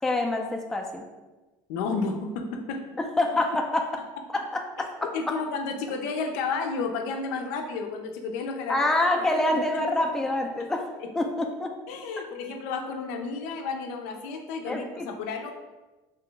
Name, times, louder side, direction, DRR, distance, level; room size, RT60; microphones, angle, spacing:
voice 1, 0.0-1.0 3.0-3.9 4.3-4.9 8.7-10.9 11.1-11.7 14.7-15.1, left 2 dB, 5° left, 2 dB, 0.3 m, -26 dB
voice 2, 1.7-2.9 5.0-8.9 9.3-9.4 11.9-15.5, left 4 dB, 85° left, 4 dB, 0.4 m, -32 dB
2.8 x 2.3 x 3.7 m, 1.2 s
cardioid pair, 135°, 9 cm